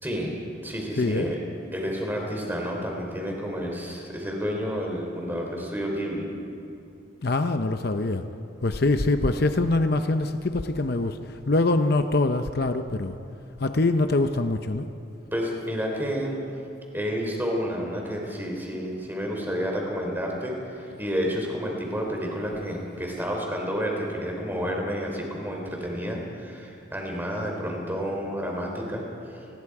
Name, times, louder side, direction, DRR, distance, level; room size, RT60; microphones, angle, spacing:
voice 1, 0.0-0.3 0.6-1.4 1.7-6.3 15.3-16.4 16.9-29.4, equal, 10° right, 0 dB, 3.8 m, -30 dB
voice 2, 0.9-1.3 7.2-8.2 8.6-13.2 13.6-14.9, left 2 dB, 50° left, 7 dB, 0.7 m, -24 dB
29.5 x 20.5 x 4.9 m, 2.8 s
head